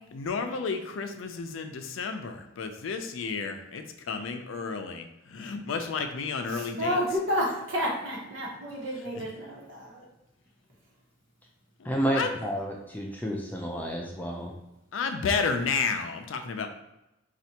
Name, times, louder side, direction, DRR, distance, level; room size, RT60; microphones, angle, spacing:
voice 1, 0.1-7.0 9.1-9.2 11.8-12.4 14.9-16.7, left 5 dB, 80° left, 6 dB, 0.4 m, -32 dB
voice 2, 6.5-10.1, equal, 70° right, -4 dB, 1.2 m, -30 dB
voice 3, 11.8-14.5, equal, 10° left, -1 dB, 0.4 m, -30 dB
4.3 x 2.4 x 2.8 m, 0.91 s
head